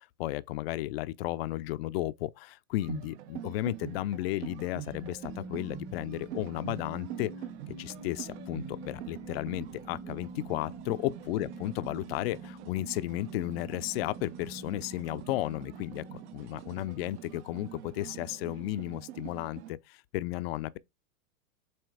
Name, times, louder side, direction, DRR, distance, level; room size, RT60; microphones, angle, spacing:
voice 1, 0.0-7.3 7.8-20.8, left 16 dB, 45° left, 0.5 m, -34 dB
sound 1, 2.8-19.7, right 12 dB, 50° right, 0.7 m, -45 dB
sound 2, 4.9-17.1, right 2 dB, 20° right, 1.0 m, -47 dB
7.7 x 2.9 x 4.7 m
hypercardioid pair, 135°, 44 cm